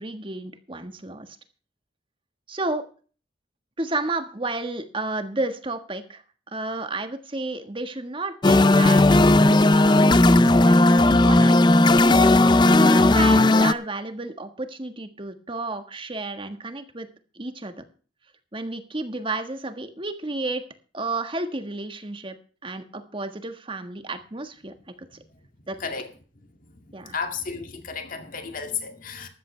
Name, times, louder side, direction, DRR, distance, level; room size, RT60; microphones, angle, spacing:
voice 1, 0.0-1.4 2.5-2.8 3.8-11.9 12.4-17.1 17.3-17.8 18.5-20.6 20.9-22.4 22.6-25.1 25.7-25.8 26.9-27.1, right 2 dB, 25° right, 1.5 m, -32 dB
sound 1, 8.4-13.7, left 2 dB, 25° left, 0.5 m, -16 dB
voice 2, 25.8-26.1 26.9-29.3, left 5 dB, 45° left, 2.2 m, -33 dB
14.5 x 12.5 x 3.3 m
head